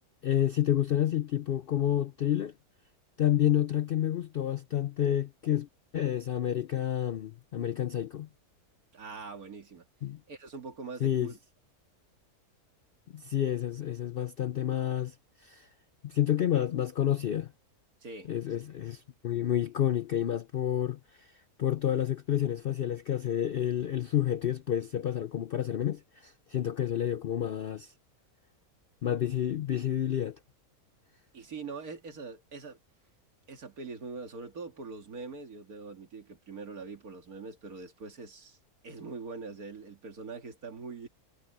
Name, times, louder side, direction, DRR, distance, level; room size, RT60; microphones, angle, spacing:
voice 1, 0.2-2.5 3.2-5.7 5.9-8.3 10.0-10.2 11.0-11.3 13.1-15.1 15.4-15.7 16.0-17.5 18.3-21.3 21.6-27.9 29.0-30.4, left 11 dB, 65° left, 0.5 m, -29 dB
voice 2, 8.9-9.9 10.3-11.4 18.0-18.3 31.3-32.8 33.5-38.6 38.8-41.1, right 4 dB, 75° right, 2.5 m, -43 dB
omnidirectional pair, 1.6 m